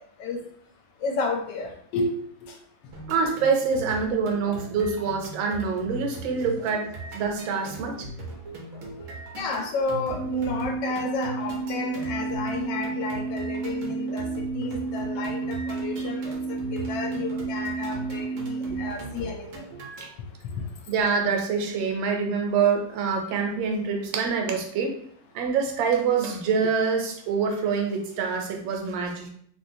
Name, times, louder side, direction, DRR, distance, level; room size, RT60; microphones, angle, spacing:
voice 1, 1.0-2.1 9.4-14.2 14.5-16.2 16.7-19.6, left 3 dB, 75° left, 2 dB, 1.2 m, -31 dB
sound 1, 2.9-20.1, right 1 dB, 60° right, 0.8 m, -39 dB
voice 2, 3.1-6.9 7.1-8.1 15.9-16.1 20.0-20.1 20.9-25.0 25.3-29.3, right 5 dB, 80° right, 2 dB, 1.4 m, -25 dB
sound 2, 10.1-18.9, right 4 dB, 20° left, 1.3 m, -31 dB
3.0 x 3.0 x 2.6 m, 0.63 s
omnidirectional pair, 2.1 m